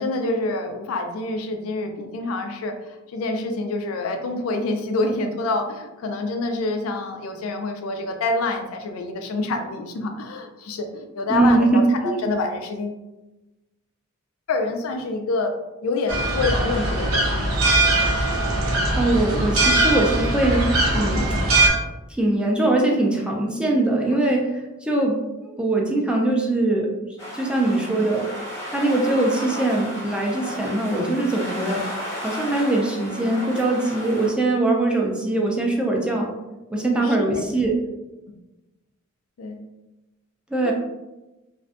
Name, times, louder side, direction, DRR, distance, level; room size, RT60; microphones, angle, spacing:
voice 1, 0.0-13.0 14.5-15.5 15.8-17.5 21.1-21.5 36.7-37.4 39.4-39.6 40.6-40.7, left 2 dB, 85° left, 5 dB, 0.4 m, -27 dB
voice 2, 11.3-12.2 19.0-21.2 22.2-24.5 24.8-26.9 27.3-28.3 28.7-31.8 32.2-36.3 36.7-37.8 40.5-40.7, right 2 dB, 5° right, -1 dB, 0.3 m, -22 dB
sound 1, 16.1-21.7, right 2 dB, 75° right, 0.6 m, -21 dB
Gandía Spain Beach, 27.2-34.3, equal, 15° left, 0.8 m, -33 dB
2.5 x 2.1 x 2.5 m, 1.0 s
head